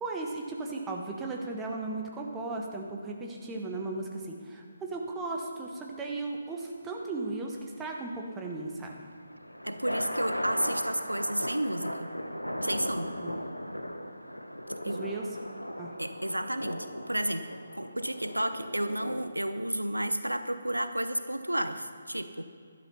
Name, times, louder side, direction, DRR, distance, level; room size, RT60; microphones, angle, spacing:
voice 1, 0.0-8.9 13.2-13.3 14.8-15.3 15.8-16.0, right 3 dB, 10° right, 0 dB, 1.3 m, -36 dB
sound 1, 9.1-19.3, equal, 85° left, 1.0 m, -37 dB
voice 2, 9.6-12.1 12.6-13.1 14.8-15.1 16.0-17.5 17.8-22.4, right 1 dB, 85° right, 10 dB, 0.8 m, -31 dB
12.0 x 11.5 x 5.7 m, 2.2 s
figure-of-eight pair, 145°, 0 cm